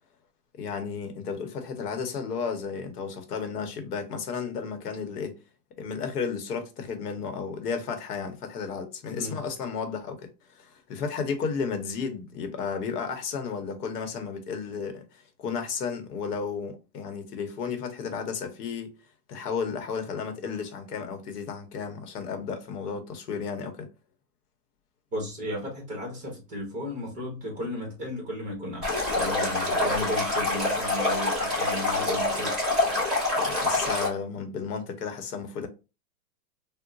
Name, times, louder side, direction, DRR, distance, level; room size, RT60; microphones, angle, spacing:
voice 1, 0.6-5.4 5.8-19.0 19.3-23.9 33.4-35.7, left 5 dB, 70° left, 0.9 m, -33 dB
voice 2, 9.1-9.4 25.1-32.6, left 1 dB, 15° right, 1.0 m, -34 dB
Stream, 28.8-34.1, left 2 dB, ahead, 0.5 m, -26 dB
3.8 x 2.1 x 2.5 m
supercardioid pair, 165°, 48 cm